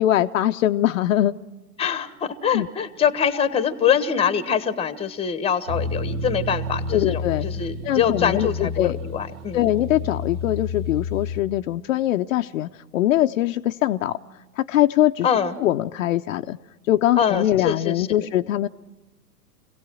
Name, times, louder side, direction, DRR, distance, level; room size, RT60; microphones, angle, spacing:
voice 1, 0.0-1.3 2.5-2.7 6.9-7.5 7.8-9.0 9.5-14.2 14.6-15.3 15.6-16.6 16.9-18.7, left 13 dB, 55° left, 7 dB, 0.8 m, -22 dB
voice 2, 1.8-9.7 15.2-15.6 17.2-18.3, left 7 dB, 10° left, 12 dB, 1.3 m, -24 dB
sound 1, 5.7-11.4, left 2 dB, 55° right, 2.3 m, -30 dB
26.5 x 17.5 x 6.2 m, 1.0 s
hypercardioid pair, 120°, 48 cm